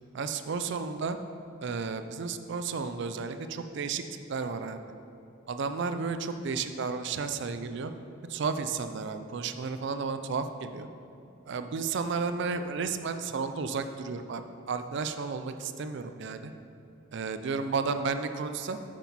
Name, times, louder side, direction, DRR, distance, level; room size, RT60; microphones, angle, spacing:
voice 1, 0.1-1.2 1.6-4.0 4.3-4.8 5.5-7.9 8.3-10.9 11.5-16.5 17.1-18.8, right 5 dB, 60° right, 9 dB, 0.4 m, -32 dB
7.9 x 6.3 x 4.2 m, 2.7 s
head